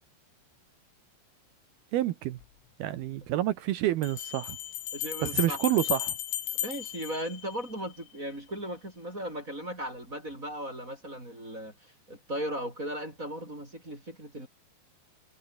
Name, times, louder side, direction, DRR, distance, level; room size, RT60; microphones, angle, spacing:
voice 1, 1.9-2.4 2.8-4.6 5.2-6.1, right 14 dB, 75° right, 2.4 m, -28 dB
Bell, 2.4-2.5 4.0-8.0, left 13 dB, 85° left, 4.6 m, -35 dB
voice 2, 4.9-5.6 6.6-14.5, equal, 15° right, 6.3 m, -37 dB
omnidirectional pair, 5.6 m